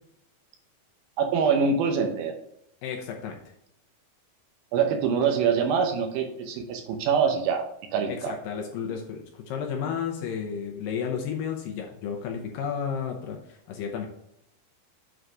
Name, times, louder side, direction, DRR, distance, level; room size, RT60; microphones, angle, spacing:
voice 1, 1.2-2.3 4.7-7.7 7.9-8.4, right 6 dB, 75° right, 3 dB, 2.5 m, -24 dB
voice 2, 2.8-3.4 8.1-14.1, left 7 dB, 75° left, 2 dB, 2.2 m, -32 dB
7.8 x 3.9 x 4.7 m, 0.76 s
omnidirectional pair, 4.5 m